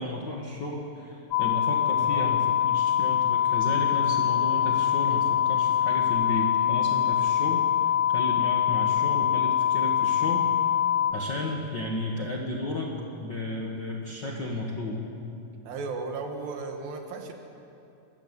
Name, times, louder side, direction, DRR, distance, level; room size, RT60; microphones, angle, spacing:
voice 1, 0.0-10.5 11.1-12.9 13.2-15.0, left 2 dB, 40° left, -2 dB, 1.8 m, -33 dB
sound 1, 1.3-11.1, left 10 dB, 70° left, 2.1 m, -24 dB
voice 2, 15.6-17.3, right 4 dB, 80° right, 3 dB, 3.3 m, -35 dB
28.0 x 13.5 x 8.2 m, 2.7 s
omnidirectional pair, 4.1 m